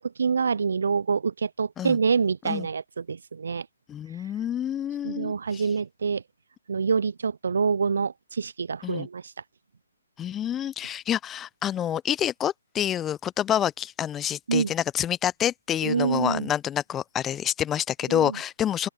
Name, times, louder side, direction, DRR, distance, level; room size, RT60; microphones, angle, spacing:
voice 1, 0.0-3.7 5.0-6.2 6.7-9.3 14.5-14.7 15.8-16.5 18.1-18.4, right 5 dB, 60° right, 0.5 m, -26 dB
voice 2, 3.9-5.6 8.8-9.1 10.2-18.9, left 10 dB, 15° left, 0.5 m, -28 dB
open air
figure-of-eight pair, 140°, 0 cm